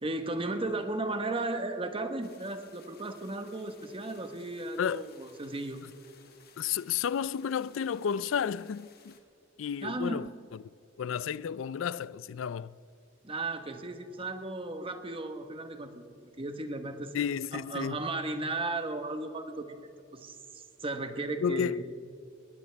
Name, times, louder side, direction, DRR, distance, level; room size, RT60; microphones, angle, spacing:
voice 1, 0.0-5.8 9.8-10.3 13.2-16.1 16.4-17.2 17.5-21.8, right 2 dB, 30° right, 1.2 m, -35 dB
sound 1, 2.2-9.2, left 7 dB, 55° left, 1.7 m, -59 dB
voice 2, 6.6-9.1 9.6-10.3 11.0-12.7 17.1-18.0 21.4-21.8, left 7 dB, 75° left, 0.4 m, -32 dB
21.0 x 17.0 x 3.5 m
head